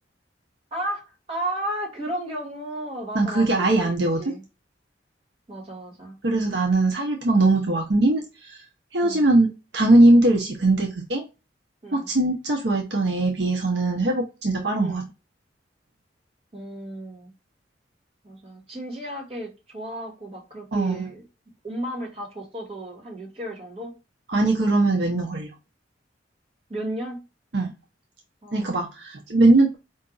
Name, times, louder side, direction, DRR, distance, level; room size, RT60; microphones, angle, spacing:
voice 1, 0.7-1.0 1.3-4.4 5.5-6.1 9.0-9.2 11.8-12.1 14.8-15.1 16.5-17.3 18.2-21.2 21.6-23.9 26.7-27.2 28.4-28.8, right 1 dB, 30° right, 1.7 m, -34 dB
voice 2, 3.1-4.2 6.2-8.6 8.9-11.3 11.9-15.0 20.7-21.1 24.3-25.5 27.5-27.7 28.5-29.8, right 2 dB, 70° right, 0.8 m, -20 dB
4.6 x 2.7 x 3.9 m
head